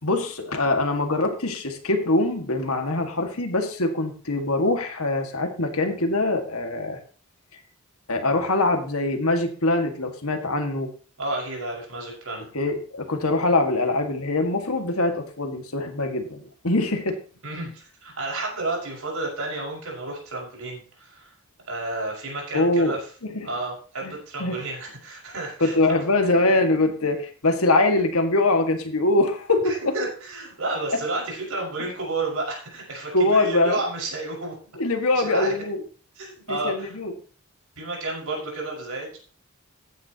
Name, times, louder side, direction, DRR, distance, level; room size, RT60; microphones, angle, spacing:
voice 1, 0.0-7.0 8.1-10.9 12.5-17.2 22.5-22.9 23.3-23.5 24.0-24.1 24.4-24.6 25.6-29.9 33.1-33.8 34.8-35.8 36.5-37.1, left 2 dB, 75° left, 5 dB, 2.0 m, -23 dB
voice 2, 11.2-12.4 17.4-21.3 21.7-23.0 23.4-26.0 29.6-34.5 35.1-35.5 36.2-36.9 37.8-39.2, right 2 dB, 70° right, -2 dB, 5.7 m, -31 dB
15.0 x 9.6 x 3.0 m, 0.40 s
head